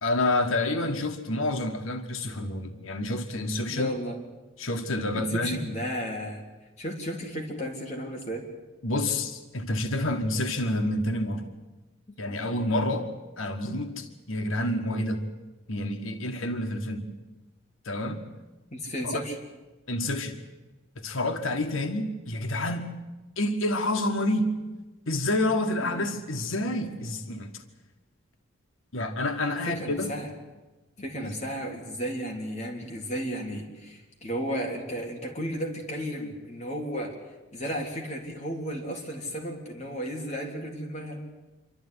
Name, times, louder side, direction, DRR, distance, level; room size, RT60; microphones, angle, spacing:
voice 1, 0.0-3.9 4.6-5.6 8.8-11.5 12.2-15.2 15.7-17.1 17.8-18.2 19.0-19.2 19.9-20.4 21.0-22.9 23.4-24.5 25.1-27.6 28.9-30.2 31.2-31.4, left 1 dB, 85° left, 5 dB, 1.6 m, -28 dB
voice 2, 3.7-4.2 5.1-6.4 6.8-8.4 12.4-12.5 18.7-19.3 25.8-26.1 29.5-30.3 31.0-37.1 37.5-41.2, equal, 35° left, 0 dB, 3.4 m, -34 dB
27.0 x 12.5 x 9.8 m, 1.1 s
head